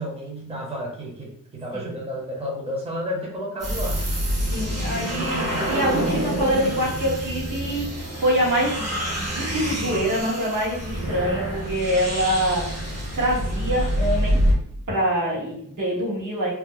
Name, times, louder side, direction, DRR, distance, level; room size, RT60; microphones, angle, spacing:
voice 1, 0.0-4.0, equal, 20° right, -2 dB, 0.8 m, -31 dB
sound 1, 3.6-14.5, equal, 50° right, 1.1 m, -26 dB
voice 2, 4.5-14.4 14.9-16.5, equal, 70° right, -5 dB, 1.4 m, -25 dB
2.9 x 2.0 x 3.7 m, 0.64 s
wide cardioid pair, 115°, 33 cm